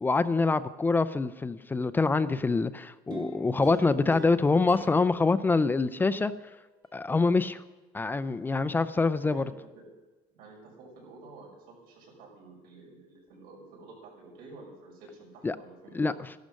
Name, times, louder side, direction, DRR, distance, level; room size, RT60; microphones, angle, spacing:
voice 1, 0.0-6.3 6.9-7.6 7.9-9.5 15.4-15.6 15.9-16.3, left 3 dB, 15° left, 13 dB, 0.4 m, -25 dB
sound 1, 3.1-6.4 6.8-6.9, right 2 dB, 30° right, 2.9 m, -45 dB
voice 2, 9.2-9.8 10.3-16.2, right 3 dB, 75° right, -2 dB, 6.1 m, -50 dB
13.5 x 11.5 x 6.4 m, 1.1 s
cardioid pair, 155°, 15 cm